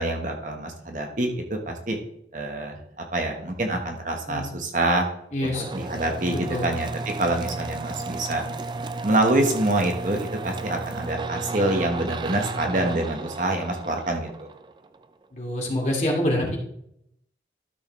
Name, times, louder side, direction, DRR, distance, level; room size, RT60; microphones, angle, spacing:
voice 1, 0.0-2.0 2.3-5.1 5.4-6.9 7.2-8.4 9.0-14.5, right 1 dB, 45° right, 3 dB, 1.2 m, -26 dB
voice 2, 5.3-5.6 6.3-6.7 15.3-16.6, left 1 dB, 40° left, -2 dB, 2.4 m, -26 dB
sound 1, 5.5-15.0, right 3 dB, 25° right, 0.3 m, -34 dB
12.5 x 6.4 x 3.1 m, 0.74 s
head